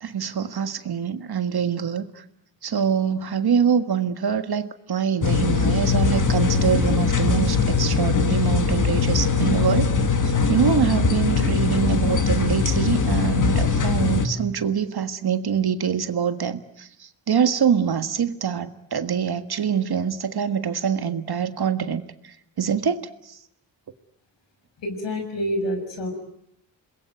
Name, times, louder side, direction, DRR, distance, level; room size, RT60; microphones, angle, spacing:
voice 1, 0.0-2.0 2.6-9.9 10.2-16.9 17.3-22.0 22.6-23.1, right 7 dB, 60° right, 10 dB, 1.7 m, -24 dB
sound 1, 5.2-14.3, left 5 dB, 45° left, 2.3 m, -21 dB
voice 2, 24.8-26.1, equal, 80° left, 6 dB, 6.6 m, -27 dB
27.5 x 21.0 x 9.3 m, 0.75 s
cardioid pair, 85°, 43 cm